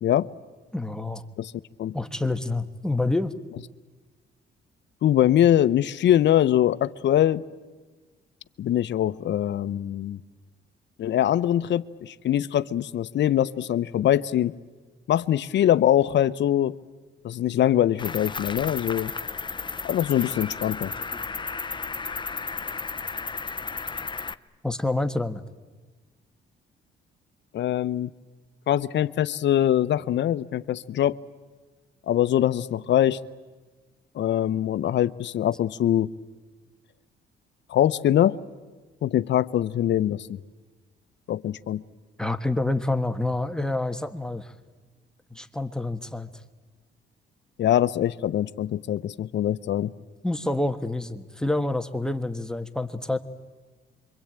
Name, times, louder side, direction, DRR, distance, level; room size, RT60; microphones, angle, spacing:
voice 1, 0.7-1.2 1.9-3.3 24.6-25.4 42.2-44.5 45.3-46.3 50.2-53.2, left 2 dB, 5° left, 7 dB, 1.4 m, -27 dB
voice 2, 5.0-7.4 8.6-10.2 11.0-14.5 15.1-16.8 17.2-19.1 19.8-20.9 27.5-28.1 28.7-31.2 32.1-33.2 34.1-36.1 37.7-38.4 39.0-40.4 41.3-41.8 47.6-49.9, left 11 dB, 65° left, 16 dB, 0.8 m, -23 dB
Cricket, 18.0-24.3, left 4 dB, 25° left, 0.8 m, -33 dB
26.5 x 24.0 x 8.9 m, 1.3 s
cardioid pair, 90°, 20 cm